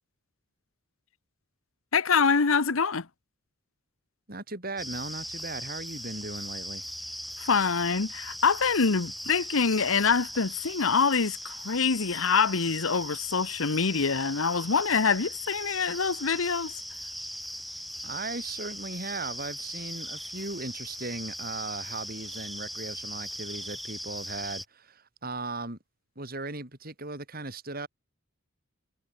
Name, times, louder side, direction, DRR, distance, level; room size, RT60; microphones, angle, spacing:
voice 1, 1.9-3.1 7.4-16.7, left 5 dB, 85° left, 1.0 m, -25 dB
voice 2, 4.3-6.8 18.0-25.8 26.2-27.9, right 3 dB, 45° right, 4.3 m, -37 dB
sound 1, 4.8-24.6, equal, ahead, 0.8 m, -39 dB
head